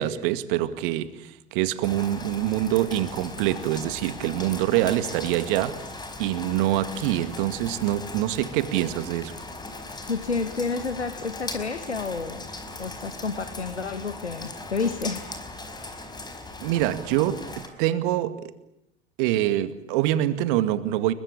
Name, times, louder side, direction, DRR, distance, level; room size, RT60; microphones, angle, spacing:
voice 1, 0.0-5.8 6.2-9.4 16.6-18.5 19.2-21.1, right 13 dB, 50° right, 2.2 m, -25 dB
Rain, 1.8-17.7, left 2 dB, 10° left, 4.8 m, -39 dB
voice 2, 10.1-12.5 12.8-15.3, left 4 dB, 80° left, 1.9 m, -30 dB
30.0 x 22.5 x 8.9 m
figure-of-eight pair, 85°, 33 cm